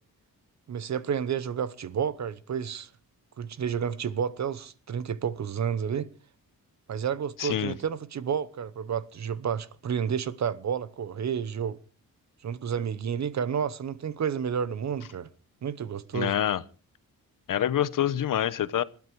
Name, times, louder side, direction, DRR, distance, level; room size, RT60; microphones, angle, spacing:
voice 1, 0.7-2.9 3.4-6.1 6.9-11.8 12.4-15.3 15.6-16.3, right 7 dB, 50° right, 1.0 m, -30 dB
voice 2, 7.4-7.7 16.1-16.6 17.5-18.8, left 11 dB, 70° left, 0.9 m, -26 dB
20.5 x 13.0 x 4.7 m
wide cardioid pair, 145°, 34 cm